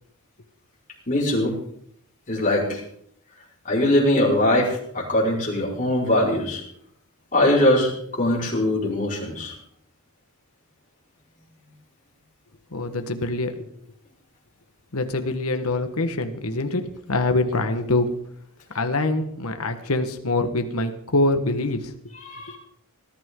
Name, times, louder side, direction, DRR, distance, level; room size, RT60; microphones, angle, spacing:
voice 1, 1.1-1.6 2.3-2.8 3.6-6.6 7.3-9.5 22.2-22.6, left 1 dB, 35° left, -4 dB, 5.1 m, -21 dB
voice 2, 12.7-13.7 14.9-18.1 18.7-22.1, left 2 dB, 75° left, 7 dB, 1.5 m, -24 dB
19.5 x 13.0 x 3.9 m, 0.68 s
head